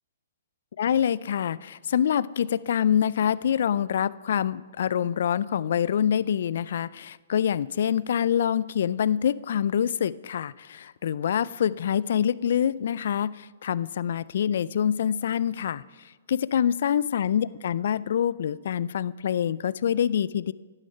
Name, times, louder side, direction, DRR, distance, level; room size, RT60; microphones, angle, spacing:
voice 1, 0.8-15.8 16.3-20.5, left 9 dB, 65° left, 19 dB, 0.3 m, -25 dB
11.0 x 9.7 x 5.6 m, 1.4 s
hypercardioid pair, 135°, 0 cm